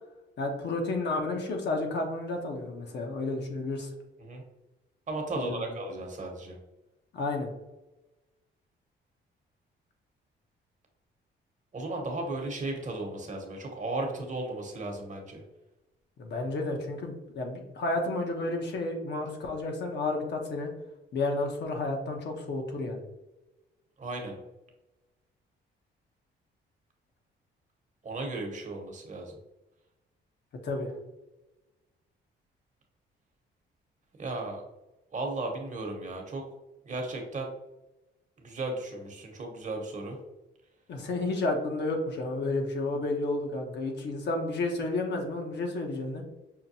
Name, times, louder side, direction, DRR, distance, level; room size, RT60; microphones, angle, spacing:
voice 1, 0.4-3.9 5.3-5.6 7.1-7.5 16.2-20.7 21.1-23.0 30.6-30.9 40.9-46.2, left 2 dB, 60° left, 2 dB, 0.9 m, -31 dB
voice 2, 5.1-6.6 11.7-15.4 24.0-24.4 28.0-29.4 34.2-34.6 35.1-36.4 36.8-37.5 38.4-40.2, right 2 dB, 40° right, 2 dB, 1.0 m, -35 dB
5.7 x 2.2 x 2.7 m, 1.0 s
cardioid pair, 90°, 20 cm